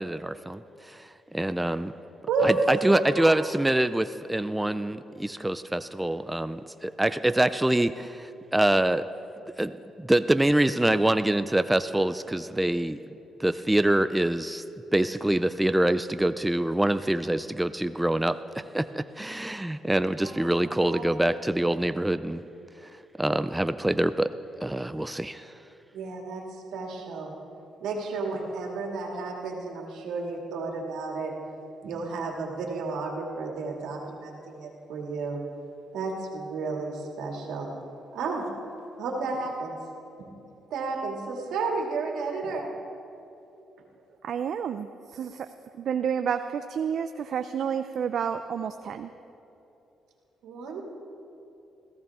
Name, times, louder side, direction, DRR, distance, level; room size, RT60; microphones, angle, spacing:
voice 1, 0.0-1.9 2.4-9.1 9.6-13.0 13.4-14.6 14.9-22.4 22.8-22.9 23.2-24.3 24.6-25.5, right 1 dB, 10° right, 12 dB, 0.4 m, -25 dB
voice 2, 2.3-3.3 20.2-21.1 25.9-27.3 27.8-31.3 31.8-35.4 35.9-37.7 38.1-38.4 39.0-39.8 40.2-40.3 40.7-42.6 50.4-50.8, right 3 dB, 85° right, 0 dB, 2.4 m, -32 dB
voice 3, 44.2-45.5 45.8-49.1, right 7 dB, 65° right, 9 dB, 0.5 m, -30 dB
21.0 x 15.5 x 3.6 m, 2.9 s
cardioid pair, 90°, 0 cm